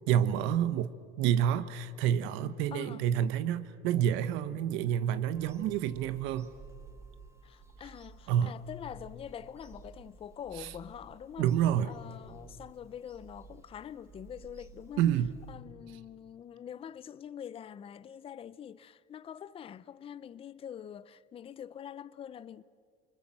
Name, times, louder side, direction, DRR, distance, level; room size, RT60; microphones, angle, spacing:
voice 1, 0.1-6.5 8.3-8.5 10.6-10.7 11.4-11.9 15.0-15.3, right 10 dB, 75° right, 1.1 m, -28 dB
voice 2, 2.7-3.1 7.4-11.5 11.8-15.0 15.5-22.6, left 9 dB, 30° left, 0.6 m, -45 dB
Bird vocalization bird call bird song / Telephone, 5.3-15.6, right 4 dB, 15° right, 1.9 m, -54 dB
28.0 x 24.5 x 7.7 m
cardioid pair, 145°, 20 cm